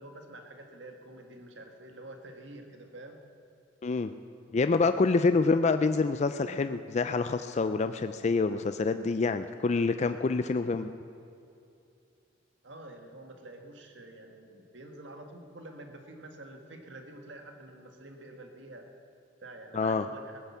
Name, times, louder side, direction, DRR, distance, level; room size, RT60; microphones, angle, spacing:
voice 1, 0.0-3.2 12.6-18.8 19.4-20.4, right 1 dB, 80° right, 4 dB, 1.6 m, -47 dB
voice 2, 4.5-10.9 19.7-20.1, left 4 dB, 40° left, 10 dB, 0.4 m, -27 dB
18.0 x 9.9 x 7.2 m, 2.6 s
head